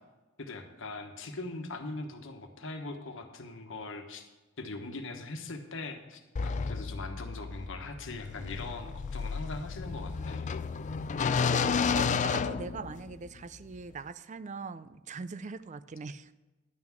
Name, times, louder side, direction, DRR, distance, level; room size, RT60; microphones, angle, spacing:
voice 1, 0.4-4.3 4.6-10.5, left 2 dB, 65° left, 5 dB, 1.3 m, -41 dB
sound 1, 6.4-13.3, left 5 dB, 35° left, 0.4 m, -32 dB
voice 2, 11.4-16.3, right 4 dB, 35° right, 15 dB, 0.4 m, -41 dB
10.5 x 6.0 x 7.3 m, 1.2 s
head